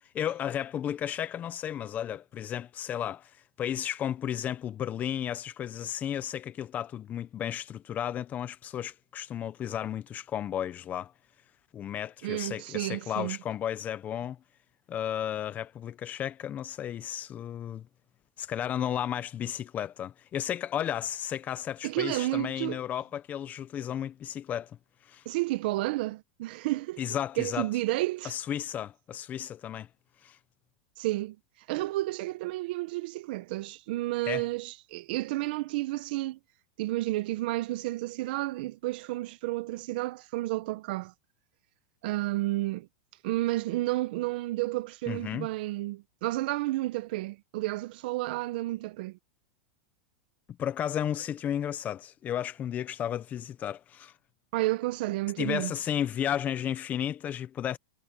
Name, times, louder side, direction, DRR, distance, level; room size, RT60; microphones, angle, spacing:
voice 1, 0.1-11.1 11.7-14.4 14.9-17.9 18.4-24.8 25.0-25.3 27.0-27.7 28.2-29.9 30.2-30.4 34.3-34.5 45.1-45.5 50.6-54.1 55.4-57.8, left 10 dB, 30° left, 0.9 m, -33 dB
voice 2, 12.2-13.4 21.8-22.8 25.2-27.0 27.4-28.3 31.0-31.4 31.7-36.4 36.8-41.1 42.0-42.9 43.2-49.2 54.5-55.7, right 18 dB, 65° right, 1.0 m, -31 dB
supercardioid pair, 125°, 6 cm